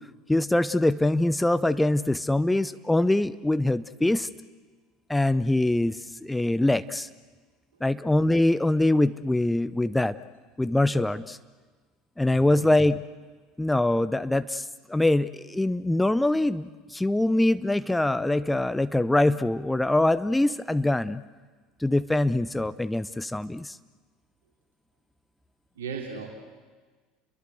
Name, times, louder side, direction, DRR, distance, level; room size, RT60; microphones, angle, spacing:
voice 1, 0.3-4.3 5.1-7.1 7.8-10.2 10.6-11.4 12.2-13.0 13.6-21.2 21.8-23.8, left 1 dB, 5° left, 15 dB, 0.7 m, -23 dB
voice 2, 12.3-12.7 25.8-26.3, right 6 dB, 70° right, 1 dB, 3.1 m, -36 dB
29.5 x 23.0 x 7.9 m, 1.4 s
figure-of-eight pair, 70°, 0 cm